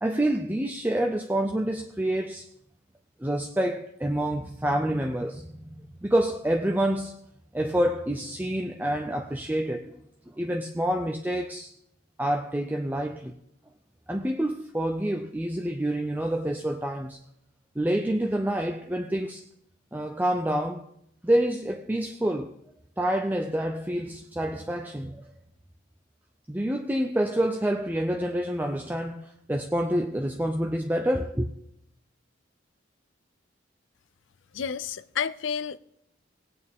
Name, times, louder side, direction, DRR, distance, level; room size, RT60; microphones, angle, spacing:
voice 1, 0.0-2.5 3.2-7.1 7.5-10.0 10.3-11.7 12.2-13.3 14.1-17.2 17.8-19.4 19.9-20.8 21.2-22.5 23.0-25.3 26.5-31.5, right 1 dB, 10° right, 0.5 m, -27 dB
voice 2, 34.5-35.8, left 7 dB, 75° left, 0.5 m, -30 dB
18.5 x 8.6 x 3.6 m
head